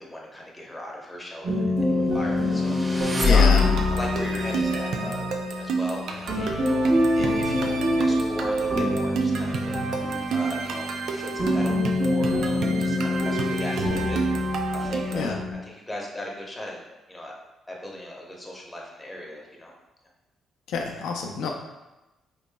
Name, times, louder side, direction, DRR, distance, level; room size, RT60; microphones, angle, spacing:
voice 1, 0.0-2.8 3.3-5.3 5.6-6.8 7.2-10.0 10.3-14.5 14.7-15.4 15.6-17.3 17.7-19.7, left 1 dB, 10° left, -2 dB, 0.8 m, -38 dB
sound 1, 1.4-15.5, left 1 dB, 40° right, 1.2 m, -26 dB
sound 2, 2.4-4.1, left 6 dB, 15° right, 0.5 m, -22 dB
sound 3, 3.0-15.3, right 5 dB, 70° right, 0.4 m, -30 dB
voice 2, 3.2-3.6 15.1-15.4 20.7-21.5, left 4 dB, 80° left, 1 dB, 0.4 m, -28 dB
4.1 x 3.0 x 2.2 m, 1.0 s
cardioid pair, 90°, 0 cm